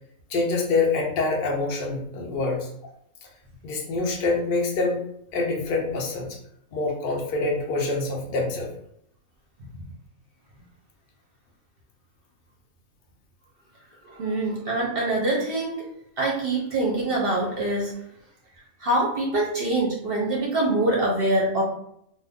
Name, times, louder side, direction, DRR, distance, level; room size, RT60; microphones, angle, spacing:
voice 1, 0.3-2.7 3.2-3.3 3.6-5.0 5.3-6.4 6.7-8.7, left 3 dB, 50° left, 0 dB, 0.7 m, -25 dB
voice 2, 14.0-15.9 16.2-17.9 18.8-21.6, right 2 dB, 50° right, -3 dB, 0.8 m, -24 dB
2.6 x 2.5 x 3.5 m, 0.74 s
omnidirectional pair, 1.5 m